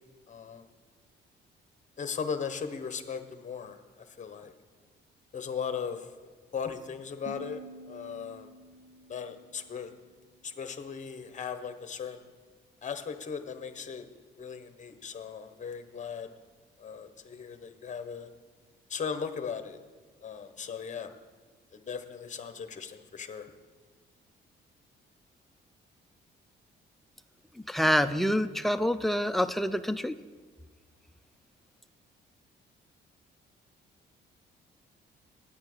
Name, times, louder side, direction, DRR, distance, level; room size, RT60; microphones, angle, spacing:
voice 1, 0.3-0.7 2.0-3.8 4.1-4.5 5.3-6.1 6.5-8.5 9.1-9.9 10.4-12.2 12.8-14.1 14.4-16.3 16.8-18.3 18.9-19.8 20.2-21.1 21.7-23.5, left 6 dB, 40° left, 9 dB, 1.0 m, -37 dB
sound 1, 7.3-10.3, right 2 dB, 90° right, 1.1 m, -49 dB
voice 2, 27.6-30.1, equal, ahead, 10 dB, 0.4 m, -27 dB
9.5 x 8.6 x 6.1 m, 1.5 s
cardioid pair, 90°, 20 cm